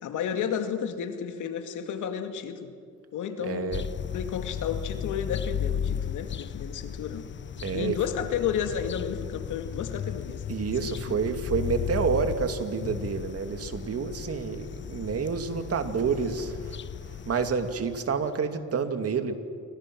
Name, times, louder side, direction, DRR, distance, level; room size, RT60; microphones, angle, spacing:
voice 1, 0.0-2.7 3.1-3.8 4.1-7.3 7.7-10.4 10.8-11.3, left 8 dB, 80° left, 6 dB, 2.4 m, -32 dB
voice 2, 3.4-3.8 7.6-7.9 10.5-16.8 17.1-19.3, right 5 dB, 50° right, 7 dB, 2.5 m, -29 dB
sound 1, 3.7-18.3, left 9 dB, 40° left, 0.6 m, -35 dB
29.0 x 24.5 x 6.2 m, 2.3 s
cardioid pair, 90°, 30 cm